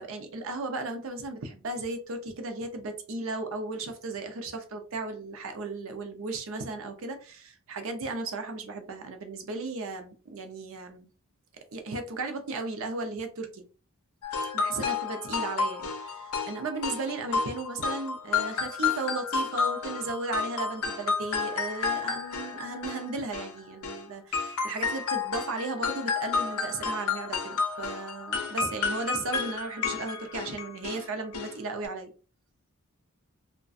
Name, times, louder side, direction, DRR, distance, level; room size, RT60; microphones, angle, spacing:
voice 1, 0.0-11.1 11.7-13.6 14.5-32.1, right 3 dB, 60° right, 6 dB, 0.5 m, -35 dB
sound 1, 14.2-24.0 24.3-31.0 31.3-31.5 31.8-31.9, left 5 dB, 80° left, 0.5 m, -31 dB
2.3 x 2.1 x 2.5 m, 0.37 s
head